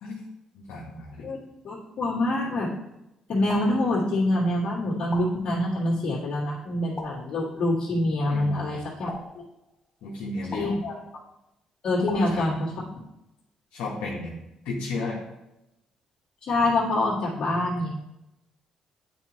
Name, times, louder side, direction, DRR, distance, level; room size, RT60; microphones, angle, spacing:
voice 1, 0.5-1.3 8.3-8.8 10.0-10.8 12.1-12.5 13.7-14.4 14.6-15.2, left 2 dB, 85° left, -5 dB, 1.1 m, -34 dB
voice 2, 1.6-2.7 3.3-9.1 10.5-11.0 11.8-12.7 16.4-17.9, left 1 dB, 55° left, -11 dB, 1.9 m, -25 dB
sound 1, 3.5-4.4 5.1-6.0 7.0-7.8 9.1-10.0 10.5-11.3 12.1-13.1, left 2 dB, 25° left, 1.5 m, -42 dB
8.9 x 4.3 x 2.9 m, 0.90 s
supercardioid pair, 70°, 2 cm